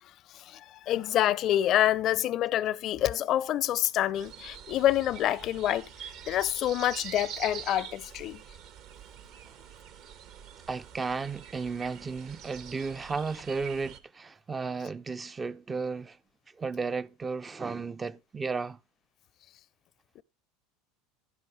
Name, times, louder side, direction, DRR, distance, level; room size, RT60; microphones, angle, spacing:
voice 1, 0.0-8.4 20.2-20.3, left 12 dB, 50° left, 0.5 m, -27 dB
sound 1, 4.1-14.0, right 9 dB, 60° right, 1.3 m, -45 dB
voice 2, 10.7-16.2 16.6-18.8, right 4 dB, 20° right, 0.4 m, -34 dB
11.0 x 10.5 x 3.2 m
hypercardioid pair, 95°, 0 cm